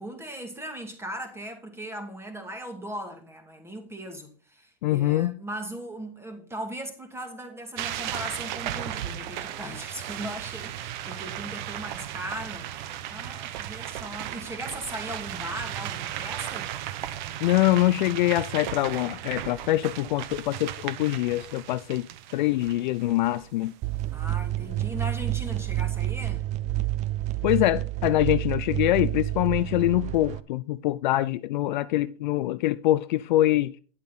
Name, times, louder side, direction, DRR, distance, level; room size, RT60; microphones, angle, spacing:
voice 1, 0.0-12.7 13.1-16.7 24.1-26.5, right 1 dB, 10° right, 2.4 m, -38 dB
voice 2, 4.8-5.4 17.4-22.1 22.3-23.7 27.4-33.7, left 15 dB, 55° left, 0.4 m, -24 dB
sound 1, 7.8-23.7, right 12 dB, 50° right, 1.0 m, -36 dB
sound 2, 23.8-30.4, right 16 dB, 25° right, 0.4 m, -29 dB
10.0 x 8.1 x 4.2 m
hypercardioid pair, 115°, 29 cm